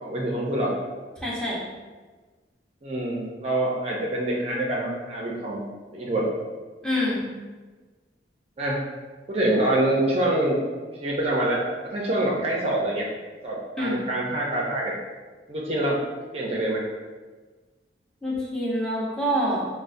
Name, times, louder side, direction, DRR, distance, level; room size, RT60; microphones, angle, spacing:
voice 1, 0.0-0.7 2.8-5.6 5.9-6.3 8.6-8.8 9.3-10.6 11.0-13.0 13.4-14.9 15.5-16.0 16.3-16.8, right 1 dB, 35° right, -4 dB, 0.5 m, -25 dB
voice 2, 1.2-1.6 6.8-7.3 13.8-14.0 18.2-19.7, equal, 5° left, -8 dB, 0.8 m, -26 dB
5.2 x 2.0 x 2.5 m, 1.3 s
head